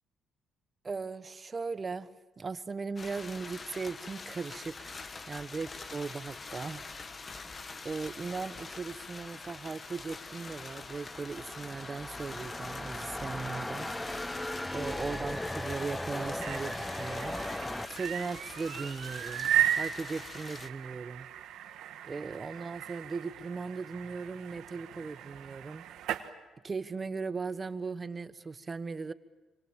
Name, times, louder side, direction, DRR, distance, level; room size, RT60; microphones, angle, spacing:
voice 1, 0.8-2.1 2.4-5.0 5.3-7.2 7.8-13.9 14.7-17.7 17.9-21.3 22.0-25.8 26.6-29.1, right 4 dB, 35° right, 13 dB, 1.2 m, -38 dB
sound 1, 3.0-20.7, left 4 dB, 35° left, 1.5 m, -45 dB
sound 2, 9.9-17.9, left 1 dB, 10° left, 0.9 m, -38 dB
sound 3, 16.2-26.3, right 11 dB, 80° right, 1.4 m, -36 dB
27.0 x 25.5 x 7.5 m, 1.2 s
supercardioid pair, 75°, 0 cm